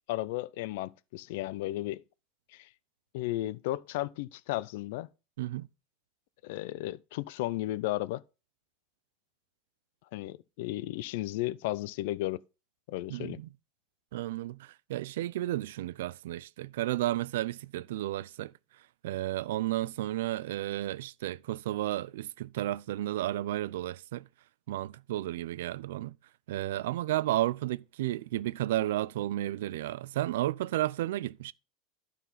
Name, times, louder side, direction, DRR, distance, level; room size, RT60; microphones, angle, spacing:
voice 1, 0.1-2.0 2.5-2.7 3.1-5.1 6.4-8.2 10.1-12.4 12.9-13.4, left 16 dB, 60° left, 0.3 m, -34 dB
voice 2, 5.4-5.7 13.1-13.5 14.1-18.5 19.0-24.3 24.7-26.2 26.5-31.5, right 14 dB, 90° right, 0.4 m, -32 dB
12.0 x 4.1 x 5.6 m
supercardioid pair, 170°, 0 cm